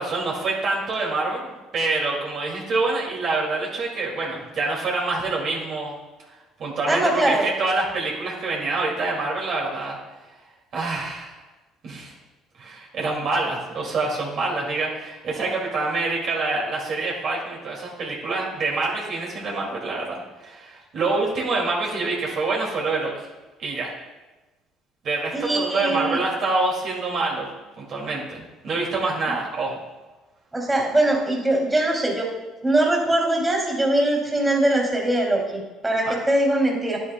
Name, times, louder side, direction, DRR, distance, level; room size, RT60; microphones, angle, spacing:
voice 1, 0.0-6.0 6.3-10.0 10.7-11.4 11.8-12.1 12.6-23.3 23.6-23.9 25.0-27.5 27.8-29.8 36.1-36.2, right 3 dB, 55° right, -2 dB, 2.2 m, -26 dB
voice 2, 6.9-7.5 25.3-26.2 30.5-32.3 32.6-37.0, right 1 dB, 15° right, -1 dB, 2.5 m, -22 dB
10.0 x 9.5 x 2.2 m, 1.1 s
hypercardioid pair, 70°, 0 cm